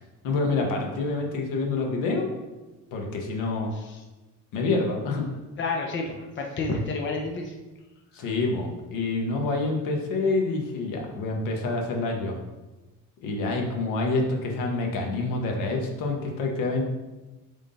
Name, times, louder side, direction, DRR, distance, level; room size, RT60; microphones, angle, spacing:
voice 1, 0.2-2.3 2.9-3.7 4.5-5.2 8.1-12.4 13.2-16.8, left 3 dB, 80° left, 1 dB, 1.4 m, -27 dB
voice 2, 5.6-7.5, left 3 dB, 35° left, 1 dB, 0.9 m, -30 dB
7.5 x 3.7 x 4.0 m, 1.1 s
cardioid pair, 130°, 33 cm